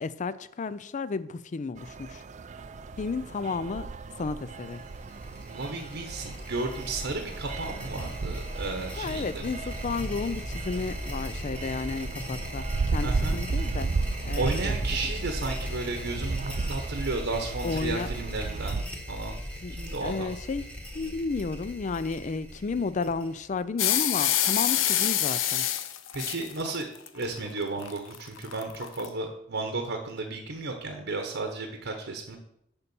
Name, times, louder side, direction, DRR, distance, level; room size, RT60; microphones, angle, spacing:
voice 1, 0.0-2.2 3.0-3.9 4.2-4.8 9.0-13.9 14.2-14.8 17.6-18.1 19.6-19.8 20.0-20.6 20.9-25.7, left 4 dB, 40° left, 0.4 m, -32 dB
sound 1, 1.8-18.8, right 4 dB, 40° right, 0.4 m, -34 dB
sound 2, 4.6-23.6, equal, 5° left, 1.4 m, -38 dB
voice 2, 5.5-9.3 13.0-13.4 14.4-19.4 19.7-20.3 26.1-26.9 27.1-32.4, right 3 dB, 65° right, 1.0 m, -33 dB
sound 3, 23.8-29.1, left 11 dB, 90° left, 0.6 m, -26 dB
6.8 x 5.4 x 7.0 m
head